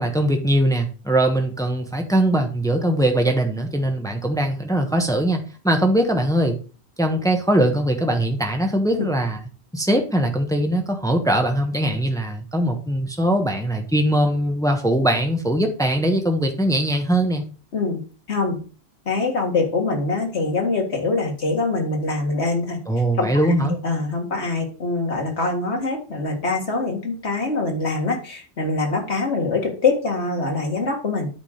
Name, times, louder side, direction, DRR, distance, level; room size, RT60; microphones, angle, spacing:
voice 1, 0.0-6.6 7.0-9.4 9.7-17.4 22.9-23.8, right 1 dB, 5° left, 4 dB, 1.2 m, -21 dB
voice 2, 18.3-18.6 19.1-22.8 23.2-31.3, left 3 dB, 85° left, 2 dB, 2.2 m, -24 dB
9.0 x 3.8 x 6.5 m, 0.37 s
omnidirectional pair, 1.1 m